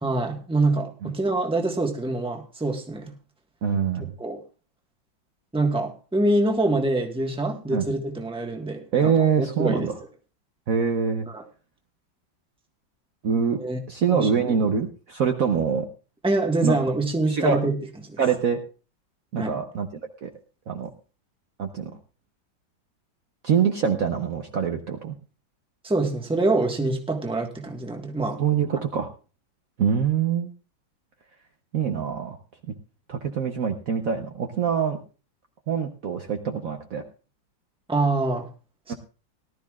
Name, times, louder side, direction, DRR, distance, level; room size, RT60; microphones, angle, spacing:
voice 1, 0.0-3.2 4.2-4.4 5.5-9.9 11.3-11.4 13.6-14.3 16.2-17.8 18.1-18.2 19.4-19.6 25.8-28.4 37.9-38.5 38.9-39.0, right 2 dB, 5° right, 2 dB, 1.2 m, -25 dB
voice 2, 3.6-4.1 7.7-7.9 8.9-9.9 10.7-11.3 13.2-13.6 13.9-15.9 16.6-16.8 17.2-17.6 18.2-18.6 19.3-20.3 20.7-20.9 21.6-21.9 23.4-25.1 28.4-29.1 29.8-30.5 31.7-32.4 32.7-32.8 33.1-35.0 35.7-37.0 38.9-39.0, right 7 dB, 55° right, 4 dB, 1.1 m, -24 dB
18.5 x 12.5 x 2.4 m, 0.35 s
omnidirectional pair, 2.0 m